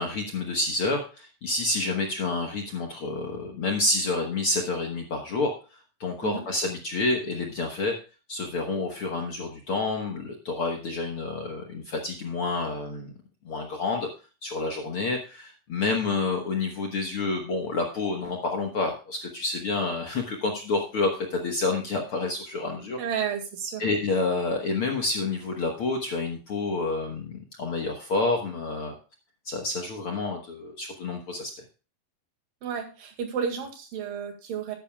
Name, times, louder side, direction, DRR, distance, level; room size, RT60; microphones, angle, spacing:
voice 1, 0.0-5.5 6.0-7.9 8.3-13.1 13.4-14.1 14.4-23.0 23.8-28.9 29.4-31.5, left 3 dB, 55° left, 2 dB, 1.6 m, -28 dB
voice 2, 23.0-23.9 32.6-34.8, right 7 dB, 75° right, 4 dB, 3.6 m, -32 dB
14.0 x 10.5 x 2.3 m, 0.33 s
omnidirectional pair, 4.0 m